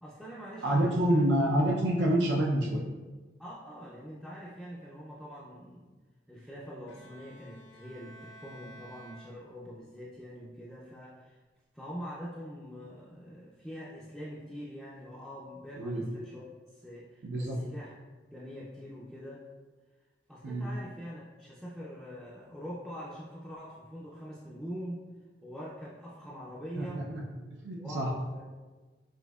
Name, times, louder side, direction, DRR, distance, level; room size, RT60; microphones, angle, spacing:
voice 1, 0.0-1.3 3.4-5.9 6.3-11.4 11.7-17.9 18.3-19.5 20.3-25.0 25.4-27.1 27.8-28.4, equal, ahead, -8 dB, 0.4 m, -44 dB
voice 2, 0.6-2.8 15.8-16.0 17.2-17.6 20.4-20.6 26.8-27.2 27.6-28.1, right 1 dB, 80° right, -2 dB, 0.6 m, -27 dB
Bowed string instrument, 6.9-10.0, right 1 dB, 75° left, 0.7 m, -53 dB
6.1 x 2.7 x 2.3 m, 1.3 s
head